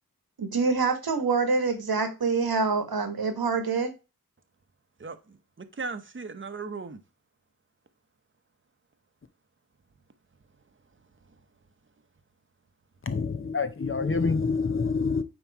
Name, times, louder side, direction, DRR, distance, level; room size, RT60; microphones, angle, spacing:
voice 1, 0.4-3.9, right 4 dB, 85° right, 1.3 m, -26 dB
voice 2, 5.0-7.0, right 4 dB, 35° right, 0.8 m, -37 dB
voice 3, 13.1-15.2, left 4 dB, 35° left, 0.7 m, -27 dB
9.0 x 3.0 x 4.7 m
wide cardioid pair, 75°, 36 cm